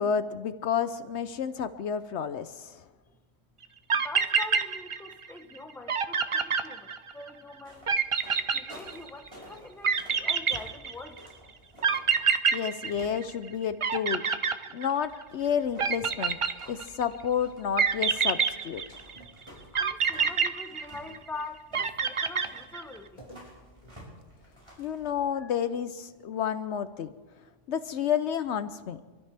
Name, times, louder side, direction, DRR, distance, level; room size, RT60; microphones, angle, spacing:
voice 1, 0.0-2.7 12.5-14.2 14.7-16.4 16.7-18.4 18.6-18.8 24.8-27.1 27.7-29.0, left 8 dB, 70° left, 12 dB, 0.9 m, -30 dB
sound 1, 3.6-3.7 3.9-5.3 5.5-5.6 5.9-7.3 7.9-9.3 9.8-11.2 11.8-13.5 13.8-15.2 15.8-17.0 17.8-19.2 19.7-21.3 21.7-23.0, right 6 dB, 50° right, 0.3 m, -26 dB
voice 2, 3.9-7.9 8.5-11.2 19.7-23.2 25.3-25.5, left 3 dB, ahead, 5 dB, 0.8 m, -44 dB
sound 2, 7.6-12.2 15.0-25.3, equal, 20° right, 5.5 m, -53 dB
sound 3, 10.5-11.2 12.9-14.3 15.8-17.1 17.6-17.8 19.1-20.6 23.2-24.8, equal, 30° left, 2.4 m, -53 dB
27.5 x 13.0 x 3.4 m, 1.3 s
omnidirectional pair, 1.3 m